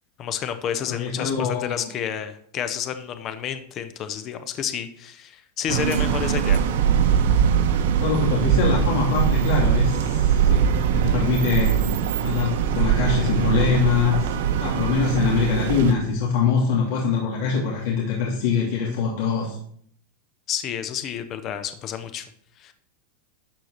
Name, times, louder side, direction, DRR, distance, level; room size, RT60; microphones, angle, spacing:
voice 1, 0.2-6.6 20.5-22.2 22.6-22.7, left 9 dB, 25° left, 10 dB, 0.8 m, -30 dB
voice 2, 0.8-1.9 8.0-11.8 12.2-14.3 14.6-19.6, left 5 dB, 60° left, -3 dB, 2.5 m, -23 dB
sound 1, 5.7-15.9, right 8 dB, 70° right, 1.4 m, -21 dB
11.5 x 4.5 x 6.5 m, 0.63 s
supercardioid pair, 165°, 0 cm